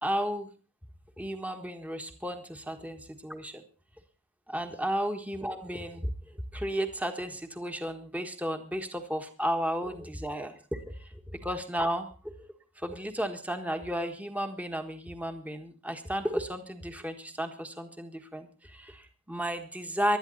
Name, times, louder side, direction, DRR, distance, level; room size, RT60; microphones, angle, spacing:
voice 1, 0.0-0.5 1.2-3.6 4.5-12.5 12.8-20.2, equal, 5° right, 6 dB, 1.4 m, -33 dB
20.0 x 12.0 x 4.1 m, 0.36 s
head